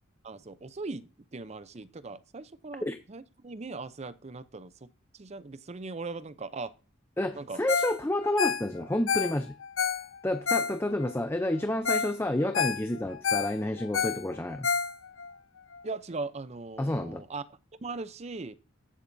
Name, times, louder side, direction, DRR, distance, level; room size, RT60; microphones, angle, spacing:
voice 1, 0.2-6.7 7.3-7.6 15.8-17.4 17.8-18.5, right 3 dB, 35° right, 0.6 m, -39 dB
voice 2, 7.2-9.6 10.2-14.7 16.8-17.2, left 1 dB, 10° left, 0.5 m, -30 dB
Ringtone, 7.7-11.1 11.6-11.7 11.9-12.1 12.4-15.3 15.7-15.8, left 6 dB, 85° left, 0.9 m, -29 dB
14.5 x 10.0 x 2.7 m
head